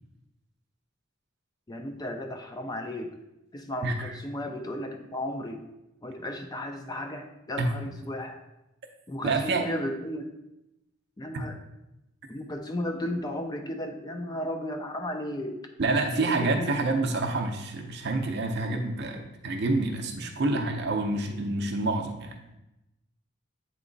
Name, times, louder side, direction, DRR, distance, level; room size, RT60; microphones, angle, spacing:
voice 1, 1.7-3.1 3.5-5.6 6.0-8.4 9.1-10.3 11.2-11.6 12.3-15.6 16.2-16.9, left 1 dB, 20° left, 5 dB, 0.4 m, -34 dB
voice 2, 9.2-9.7 11.3-11.4 15.8-22.4, right 2 dB, 55° right, 3 dB, 0.6 m, -28 dB
8.0 x 3.0 x 3.9 m, 0.93 s
head